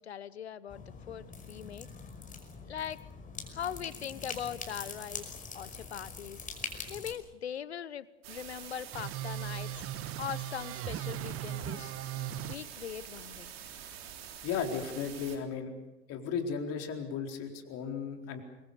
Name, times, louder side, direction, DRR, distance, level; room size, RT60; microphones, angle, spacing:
voice 1, 0.0-1.9 2.6-3.0 3.5-6.5 6.9-9.9 10.2-11.9 12.4-13.5, left 9 dB, 85° left, 19 dB, 1.0 m, -41 dB
sound 1, 0.7-7.1, left 4 dB, 25° left, 5.4 m, -43 dB
sound 2, 8.2-15.4, right 9 dB, 70° right, 3.6 m, -46 dB
sound 3, 8.9-12.6, right 11 dB, 45° right, 1.3 m, -38 dB
voice 2, 14.4-15.7 16.1-18.4, left 6 dB, 50° left, 4 dB, 4.2 m, -35 dB
26.0 x 23.5 x 6.9 m, 1.0 s
hypercardioid pair, 75°, 31 cm